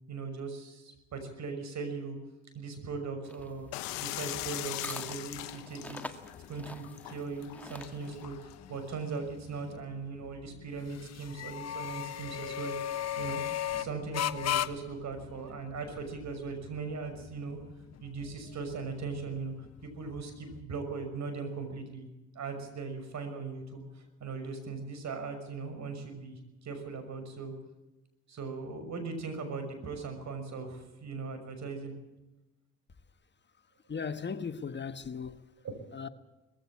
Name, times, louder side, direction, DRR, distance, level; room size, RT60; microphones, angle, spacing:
voice 1, 0.1-2.2 2.5-3.7 4.0-6.2 6.5-12.8 13.2-13.4 13.7-17.6 18.0-19.5 19.8-27.5 28.3-31.9 35.6-35.7 36.0-36.1, right 4 dB, 55° right, 6.0 m, -39 dB
sound 1, 3.2-8.3, left 1 dB, 5° left, 2.0 m, -46 dB
sound 2, 3.4-20.6, left 11 dB, 50° left, 1.1 m, -39 dB
sound 3, 3.7-9.2, left 18 dB, 85° left, 1.0 m, -41 dB
voice 2, 33.9-35.4 35.9-36.1, left 6 dB, 35° left, 1.4 m, -37 dB
20.5 x 15.5 x 8.6 m
supercardioid pair, 70°, 33 cm